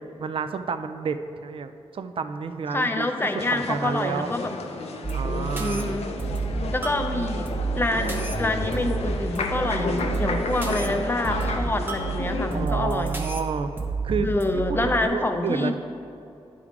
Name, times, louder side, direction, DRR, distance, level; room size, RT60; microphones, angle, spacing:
voice 1, 0.2-3.1 3.5-4.3 5.1-6.0 12.5-13.7 14.0-14.3 14.8-15.7, right 5 dB, 60° right, 10 dB, 0.4 m, -30 dB
voice 2, 2.7-4.5 5.6-6.2 6.7-7.5 7.8-13.3 14.2-15.7, left 2 dB, 20° left, 5 dB, 0.5 m, -27 dB
sound 1, 3.4-12.7, left 3 dB, 80° left, 0.6 m, -32 dB
sound 2, 5.0-15.0, right 4 dB, 20° right, 0.8 m, -30 dB
11.0 x 3.7 x 4.7 m, 2.7 s
wide cardioid pair, 135°, 11 cm